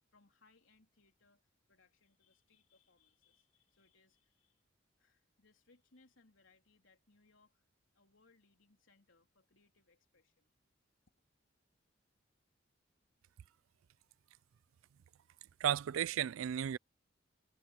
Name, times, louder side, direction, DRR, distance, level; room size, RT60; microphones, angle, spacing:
voice 1, 0.1-1.4 1.7-4.6 5.0-7.7 7.9-10.5, left 3 dB, 80° left, 3.6 m, -70 dB
voice 2, 15.6-16.8, right 10 dB, 90° right, 0.3 m, -34 dB
head